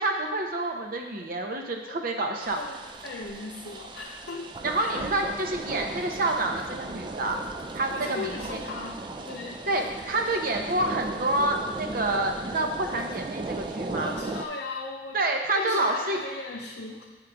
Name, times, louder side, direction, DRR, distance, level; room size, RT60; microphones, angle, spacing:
voice 1, 0.0-2.6 4.6-7.4 7.7-8.6 9.7-14.2 15.1-16.2, right 2 dB, 50° right, 3 dB, 0.8 m, -28 dB
sound 1, 2.4-14.5, right 2 dB, 25° right, 0.3 m, -37 dB
voice 2, 2.5-5.1 7.9-9.7 10.3-10.4 13.9-15.2 15.5-17.0, left 3 dB, 60° left, -2 dB, 0.6 m, -38 dB
8.4 x 3.7 x 4.7 m, 1.3 s
head